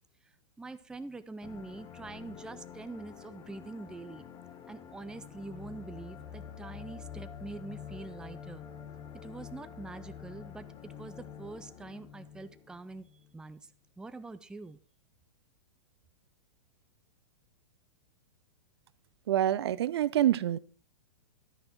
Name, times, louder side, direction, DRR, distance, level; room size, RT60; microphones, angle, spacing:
voice 1, 0.6-4.2 4.7-8.6 9.2-13.1 13.3-13.7 14.0-14.8, right 3 dB, 5° right, 12 dB, 0.5 m, -44 dB
sound 1, 1.4-13.3, left 8 dB, 30° left, 1.4 m, -47 dB
voice 2, 19.3-20.6, right 12 dB, 60° right, 18 dB, 0.6 m, -26 dB
11.5 x 9.7 x 4.3 m, 0.37 s
figure-of-eight pair, 110°, 15 cm